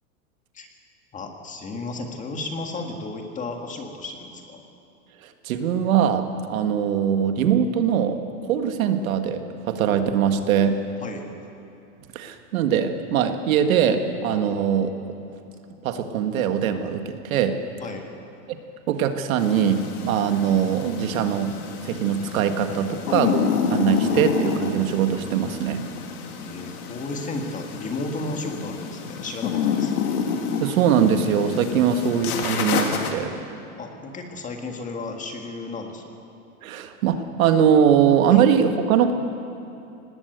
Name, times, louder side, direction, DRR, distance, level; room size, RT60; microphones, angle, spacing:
voice 1, 1.1-4.6 11.0-11.3 17.8-18.1 26.4-29.9 33.8-36.1 38.3-38.4, left 2 dB, 15° left, 3 dB, 1.8 m, -33 dB
voice 2, 5.4-10.8 12.2-14.9 15.8-17.6 18.9-19.8 20.0-21.5 21.8-25.8 30.6-33.3 36.6-39.1, right 8 dB, 70° right, 7 dB, 1.8 m, -21 dB
sound 1, 19.4-33.1, left 6 dB, 80° left, 2.7 m, -29 dB
19.0 x 17.5 x 8.1 m, 2.8 s
supercardioid pair, 150°, 43 cm